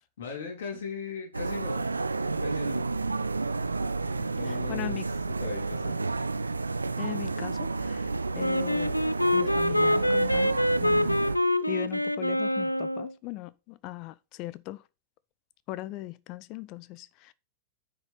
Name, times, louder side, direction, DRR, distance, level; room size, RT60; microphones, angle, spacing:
voice 1, 0.2-1.9 2.4-2.9 4.3-5.0 5.3-6.0, left 5 dB, 60° left, 3.6 m, -38 dB
sound 1, 1.3-11.4, right 3 dB, 80° right, 0.6 m, -31 dB
voice 2, 4.1-5.0 7.0-8.9 9.3-11.2 11.7-14.8 15.7-17.3, left 16 dB, 40° left, 0.7 m, -39 dB
Wind instrument woodwind instrument, 8.4-13.1, left 1 dB, 85° left, 0.4 m, -26 dB
9.7 x 6.3 x 4.1 m
figure-of-eight pair, 90°, 0 cm